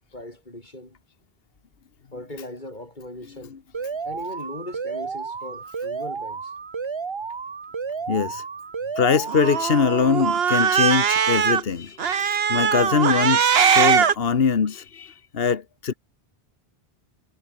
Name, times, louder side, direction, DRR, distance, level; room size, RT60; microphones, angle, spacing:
voice 1, 0.1-1.0 2.1-3.6 4.0-6.5, left 1 dB, 50° left, 7.4 m, -39 dB
voice 2, 3.3-3.6 8.1-8.4 8.9-15.9, left 6 dB, 70° left, 1.5 m, -23 dB
Alarm, 3.7-9.7, right 5 dB, 35° right, 0.6 m, -32 dB
Cat, 9.3-11.6 12.0-14.1, right 7 dB, 75° right, 1.3 m, -20 dB
omnidirectional pair, 1.0 m